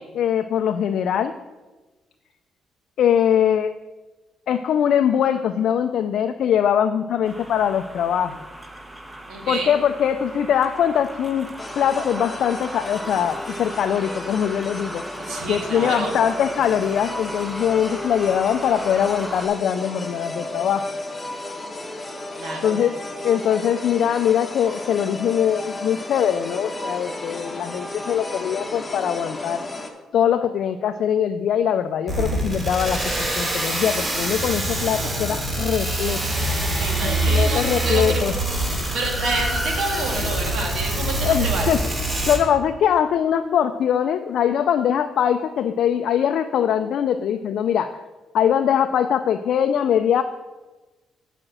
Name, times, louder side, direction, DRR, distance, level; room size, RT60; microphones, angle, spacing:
voice 1, 0.0-1.4 3.0-3.7 4.5-8.4 9.5-11.5 11.8-15.0 15.5-20.9 22.6-23.0 23.2-29.6 30.1-33.0 33.4-36.2 37.0-38.3 41.2-41.8 42.3-48.0 48.3-50.2, left 9 dB, 70° left, 8 dB, 0.3 m, -22 dB
sound 1, 7.2-19.5, right 1 dB, 10° right, 0.8 m, -37 dB
voice 2, 9.3-9.7 15.3-16.1 22.4-22.8 36.7-38.2 38.9-41.8, right 3 dB, 75° right, 1 dB, 1.9 m, -28 dB
sound 2, 11.6-29.9, left 2 dB, 15° left, 1.0 m, -34 dB
sound 3, 32.1-42.4, right 1 dB, 30° right, 2.7 m, -24 dB
7.7 x 4.9 x 6.1 m, 1.2 s
cardioid pair, 90°, 0 cm